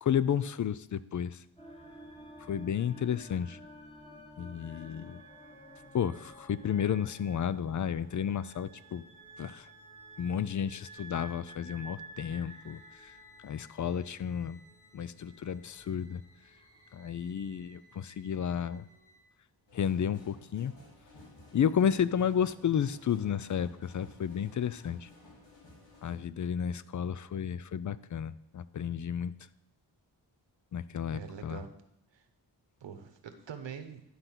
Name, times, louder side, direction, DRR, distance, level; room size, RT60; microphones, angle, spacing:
voice 1, 0.0-1.4 2.5-3.6 4.4-5.2 5.9-9.0 9.4-9.7 10.2-13.1 13.4-14.6 14.9-16.2 16.9-18.9 19.7-20.7 21.5-25.1 26.0-29.3 30.7-31.6, left 8 dB, 45° left, 17 dB, 0.4 m, -32 dB
sound 1, 1.6-19.2, right 1 dB, 15° left, 1.4 m, -52 dB
sound 2, 19.7-26.2, left 2 dB, 75° left, 2.9 m, -55 dB
voice 2, 31.1-31.7 32.1-32.2 32.8-34.0, right 7 dB, 75° right, 8 dB, 1.1 m, -44 dB
11.5 x 4.0 x 5.8 m, 0.82 s
cardioid pair, 85°, 45 cm